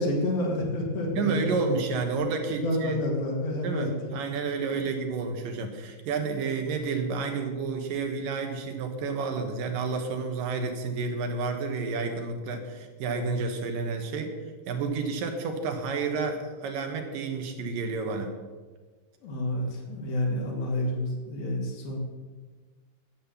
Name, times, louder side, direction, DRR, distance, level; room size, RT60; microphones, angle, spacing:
voice 1, 0.0-1.8 2.5-3.9 4.7-4.9 19.2-22.0, left 1 dB, 90° left, -1 dB, 3.9 m, -29 dB
voice 2, 1.2-3.0 3.6-14.3 14.7-18.3, right 4 dB, 75° right, 4 dB, 2.9 m, -30 dB
11.0 x 7.7 x 7.0 m, 1.4 s
omnidirectional pair, 4.1 m